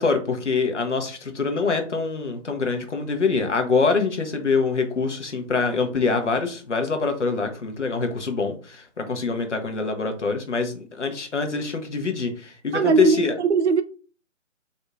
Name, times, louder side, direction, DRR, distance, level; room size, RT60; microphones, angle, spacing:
voice 1, 0.0-13.3, left 4 dB, 70° left, 0.9 m, -24 dB
voice 2, 12.7-13.8, right 5 dB, 65° right, 0.5 m, -20 dB
4.2 x 2.7 x 2.3 m
figure-of-eight pair, 145°, 38 cm